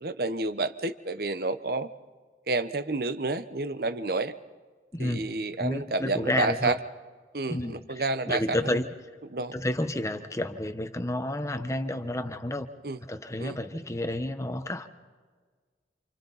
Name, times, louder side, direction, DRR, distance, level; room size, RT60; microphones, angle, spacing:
voice 1, 0.0-1.9 2.5-4.3 5.0-6.7 7.3-8.6 9.3-9.5 12.8-13.0 13.4-13.6, right 2 dB, 55° right, 11 dB, 1.0 m, -29 dB
voice 2, 4.9-5.3 5.6-6.8 7.5-8.9 9.5-12.7 13.0-14.9, left 1 dB, 15° left, 8 dB, 1.1 m, -30 dB
28.5 x 28.5 x 4.2 m, 1.5 s
head